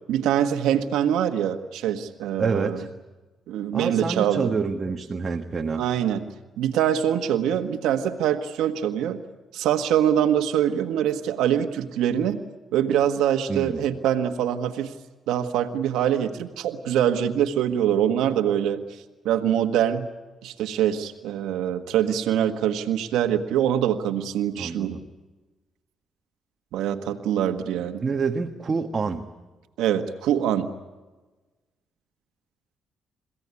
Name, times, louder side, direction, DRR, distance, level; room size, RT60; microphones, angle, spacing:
voice 1, 0.1-2.8 3.5-4.5 5.8-6.2 6.6-9.2 9.5-12.4 12.7-14.9 15.3-18.8 19.2-20.1 20.4-25.0 26.7-28.0 29.8-30.7, right 10 dB, 90° right, 6 dB, 1.5 m, -24 dB
voice 2, 2.4-2.9 3.7-5.8 13.5-13.8 24.6-25.0 28.0-29.2, right 4 dB, 35° right, 3 dB, 1.5 m, -27 dB
29.5 x 16.0 x 9.7 m, 1.2 s
cardioid pair, 90°, 0 cm